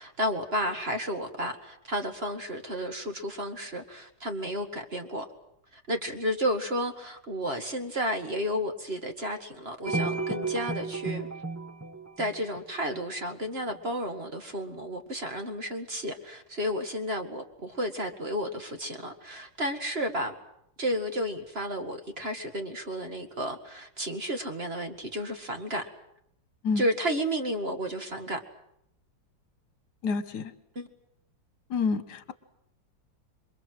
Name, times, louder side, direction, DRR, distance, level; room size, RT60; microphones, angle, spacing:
voice 1, 0.0-5.3 5.7-11.3 12.2-20.4 20.8-25.9 26.8-28.4 30.8-30.9, equal, 35° right, 7 dB, 2.2 m, -32 dB
sound 1, 9.9-13.0, right 3 dB, 10° right, 1.1 m, -33 dB
voice 2, 30.0-30.5 31.7-32.3, left 4 dB, 60° left, 13 dB, 2.0 m, -28 dB
27.5 x 23.0 x 7.8 m, 0.76 s
omnidirectional pair, 2.0 m